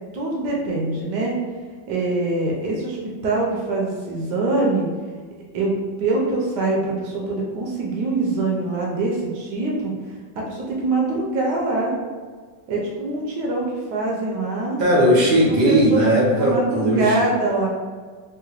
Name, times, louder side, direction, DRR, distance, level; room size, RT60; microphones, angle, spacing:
voice 1, 0.1-1.3 1.9-4.9 5.5-5.7 6.0-9.9 10.4-11.9 12.7-14.8 15.5-16.1 16.3-17.7, right 2 dB, 70° right, -2 dB, 1.1 m, -24 dB
voice 2, 14.8-17.1, right 1 dB, 50° right, -4 dB, 0.6 m, -17 dB
3.7 x 2.1 x 2.8 m, 1.5 s
omnidirectional pair, 2.1 m